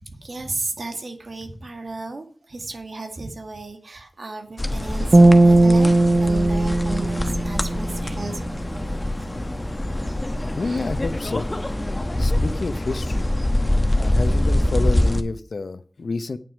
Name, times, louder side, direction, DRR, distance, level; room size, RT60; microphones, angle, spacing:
voice 1, 0.0-9.1 10.6-11.0, right 3 dB, 75° right, 1.9 m, -34 dB
sound 1, 4.6-15.2, left 1 dB, 25° left, 1.1 m, -24 dB
sound 2, 5.1-8.5, right 2 dB, 45° right, 0.7 m, -17 dB
voice 2, 10.6-11.5 11.9-13.3 13.9-16.4, left 3 dB, 85° left, 0.7 m, -29 dB
9.1 x 7.7 x 6.1 m
wide cardioid pair, 80°, 0 cm